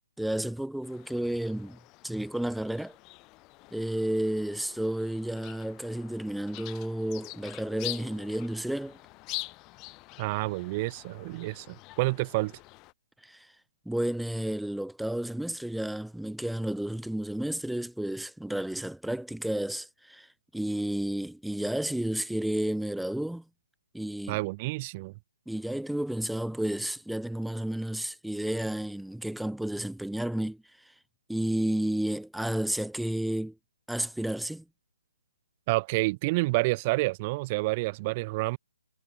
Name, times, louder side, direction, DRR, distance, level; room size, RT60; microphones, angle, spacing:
voice 1, 0.2-3.0 3.7-9.0 13.2-13.5 13.9-23.4 23.9-24.4 25.5-30.6 31.3-33.6 33.9-34.6, right 1 dB, ahead, 0.3 m, -31 dB
sound 1, 0.8-12.9, left 23 dB, 20° left, 4.4 m, -45 dB
voice 2, 10.2-12.5 24.3-25.1 35.7-38.6, right 23 dB, 30° right, 1.3 m, -29 dB
figure-of-eight pair, 145°, 0 cm